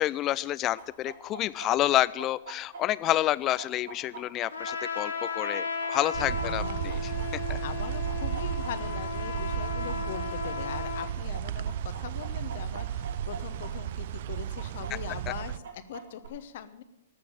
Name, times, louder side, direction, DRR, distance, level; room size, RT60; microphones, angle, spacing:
voice 1, 0.0-7.1 7.5-7.6, left 14 dB, 30° left, 19 dB, 0.4 m, -29 dB
Chicken rooster, 0.8-9.1 9.4-13.7 14.0-14.1 14.6-16.3, right 4 dB, 75° right, 2.8 m, -44 dB
Trumpet, 4.5-11.1, left 6 dB, 80° left, 1.6 m, -35 dB
sound 1, 6.1-15.6, right 10 dB, 55° right, 0.4 m, -34 dB
voice 2, 6.4-6.8 7.6-16.8, left 9 dB, 55° left, 12 dB, 1.0 m, -41 dB
13.0 x 7.1 x 9.2 m, 0.98 s
hypercardioid pair, 115°, 0 cm